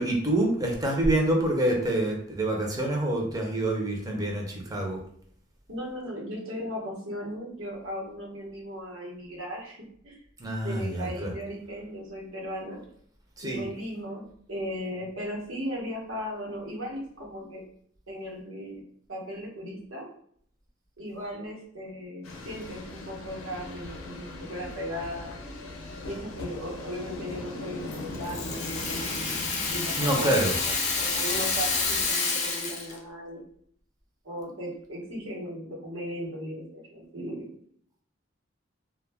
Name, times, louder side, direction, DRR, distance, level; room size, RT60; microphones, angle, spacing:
voice 1, 0.0-5.0 10.4-11.3 13.4-13.6 30.0-30.5, right 1 dB, 20° right, 0 dB, 0.5 m, -26 dB
voice 2, 5.7-9.8 10.0-10.2 10.6-12.8 13.4-17.6 18.1-18.8 19.1-20.1 21.0-25.4 26.0-33.4 34.2-37.5, equal, 85° right, -3 dB, 0.9 m, -37 dB
sound 1, 22.2-32.1, left 2 dB, 90° left, 0.5 m, -40 dB
Rattle (instrument), 27.9-33.0, left 4 dB, 35° left, 0.6 m, -29 dB
2.2 x 2.1 x 3.3 m, 0.63 s
head